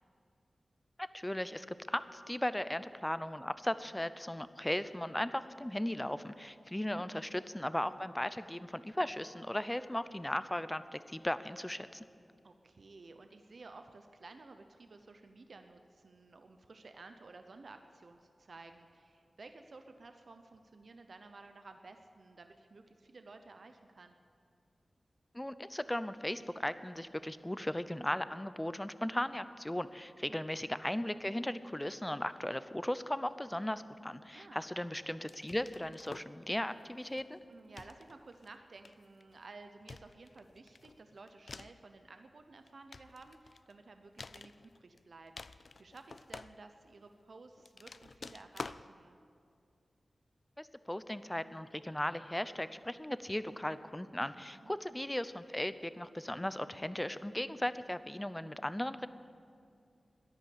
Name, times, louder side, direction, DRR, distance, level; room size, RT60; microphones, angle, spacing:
voice 1, 1.0-12.1 25.3-37.4 50.6-59.1, left 1 dB, 15° left, 13 dB, 0.6 m, -37 dB
voice 2, 12.4-24.1 30.2-30.4 34.3-34.7 37.5-49.2 54.5-54.7, right 3 dB, 70° right, 7 dB, 0.7 m, -54 dB
sound 1, 35.3-36.4 37.1-37.4 37.8-38.5 38.8-39.3 39.9-41.9 42.5-43.7 44.2-45.0 45.3-46.9 47.6-48.9, left 4 dB, 60° left, 0.4 m, -49 dB
14.0 x 10.5 x 8.5 m, 2.4 s
cardioid pair, 50°, 0 cm